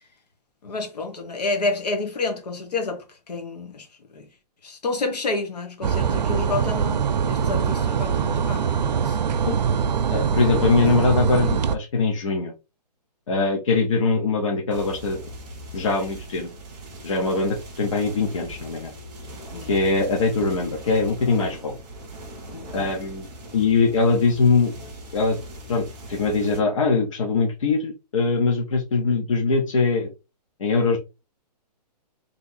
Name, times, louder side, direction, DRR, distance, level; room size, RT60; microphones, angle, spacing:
voice 1, 0.6-3.9 4.1-4.3 4.6-9.2 10.6-10.7 19.5-19.7 22.5-22.9, left 3 dB, 70° left, 1.4 m, -29 dB
sound 1, 5.8-11.7, right 7 dB, 85° right, 0.6 m, -23 dB
voice 2, 10.1-12.5 13.3-15.2 15.7-16.5 17.0-18.9 19.7-21.7 22.7-24.7 25.1-25.4 25.7-30.1 30.6-31.0, left 4 dB, 50° left, 1.0 m, -22 dB
sound 2, 14.7-26.6, equal, 10° right, 0.6 m, -40 dB
3.4 x 2.8 x 4.0 m
hypercardioid pair, 180°, 21 cm